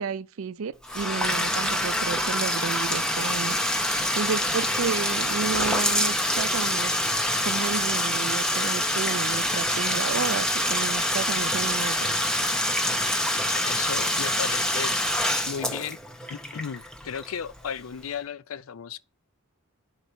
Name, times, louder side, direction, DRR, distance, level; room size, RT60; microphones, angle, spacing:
voice 1, 0.0-3.9 4.1-6.9 7.4-12.1, right 6 dB, 80° right, 0.4 m, -32 dB
Bathtub (filling or washing), 0.8-17.6, left 1 dB, 5° left, 0.6 m, -26 dB
voice 2, 13.7-14.9 15.5-16.0 16.3-19.0, left 7 dB, 80° left, 0.5 m, -34 dB
11.0 x 4.0 x 4.3 m
head